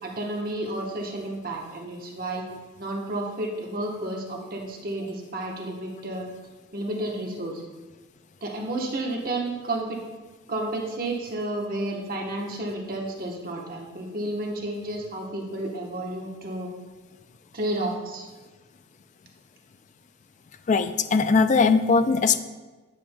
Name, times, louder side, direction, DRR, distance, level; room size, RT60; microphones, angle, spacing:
voice 1, 0.0-2.5 2.8-6.3 6.7-7.6 8.4-10.0 10.5-16.7 17.5-18.3, right 1 dB, 45° right, 0 dB, 1.0 m, -31 dB
voice 2, 20.7-22.4, left 4 dB, 35° left, 10 dB, 0.3 m, -20 dB
10.0 x 7.0 x 2.2 m, 1.3 s
head